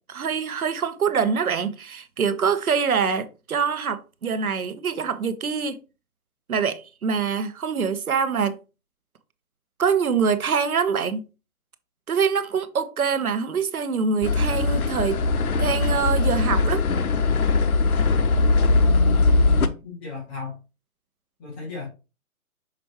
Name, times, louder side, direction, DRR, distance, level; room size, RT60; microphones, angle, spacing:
voice 1, 0.1-5.8 6.5-8.6 9.8-11.3 12.1-15.2 15.6-16.8, right 6 dB, 80° right, 1.1 m, -24 dB
sound 1, 14.2-19.7, left 3 dB, 85° left, 0.9 m, -20 dB
voice 2, 18.6-20.6 21.4-21.9, left 4 dB, 10° left, 0.6 m, -34 dB
6.1 x 5.1 x 3.1 m
hypercardioid pair, 150°, 42 cm